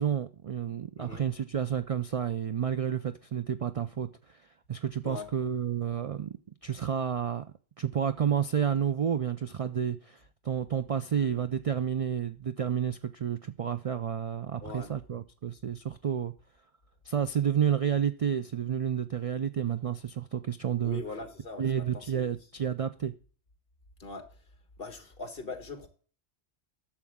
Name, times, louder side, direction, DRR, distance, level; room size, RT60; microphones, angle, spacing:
voice 1, 0.0-4.4 4.7-6.3 6.6-7.4 7.8-10.2 10.4-16.3 17.0-21.0 21.6-23.1, right 8 dB, 60° right, 0.3 m, -30 dB
voice 2, 14.6-14.9 20.8-22.4 24.0-24.3 24.8-25.9, left 3 dB, 55° left, 1.6 m, -41 dB
12.0 x 7.2 x 3.6 m
omnidirectional pair, 1.2 m